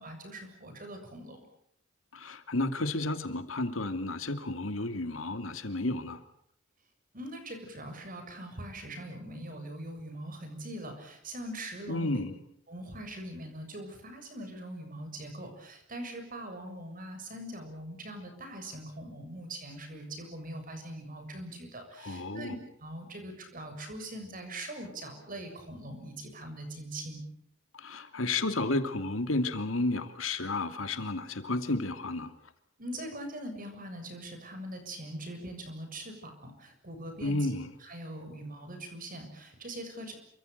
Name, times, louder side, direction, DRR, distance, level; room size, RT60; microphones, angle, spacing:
voice 1, 0.0-1.5 7.1-12.2 12.7-27.2 32.8-37.5 37.8-40.1, right 1 dB, 45° right, 6 dB, 7.1 m, -42 dB
voice 2, 2.1-6.2 11.9-12.3 22.0-22.6 27.7-32.3 37.2-37.7, left 2 dB, 85° left, 8 dB, 2.7 m, -32 dB
28.0 x 25.5 x 6.8 m, 0.70 s
head